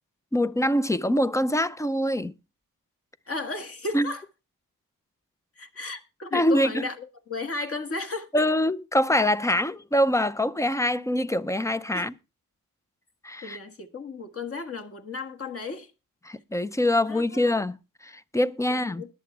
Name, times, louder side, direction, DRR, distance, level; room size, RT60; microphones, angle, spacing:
voice 1, 0.3-2.3 3.9-4.1 6.3-6.7 8.3-12.1 13.2-13.6 16.2-17.8 18.0-19.0, left 1 dB, 10° left, 0.5 m, -24 dB
voice 2, 3.3-4.2 5.6-8.3 11.9-12.1 13.4-15.9 17.1-17.5 18.7-19.1, left 3 dB, 40° left, 1.8 m, -34 dB
20.5 x 7.6 x 3.3 m
wide cardioid pair, 145°, 35 cm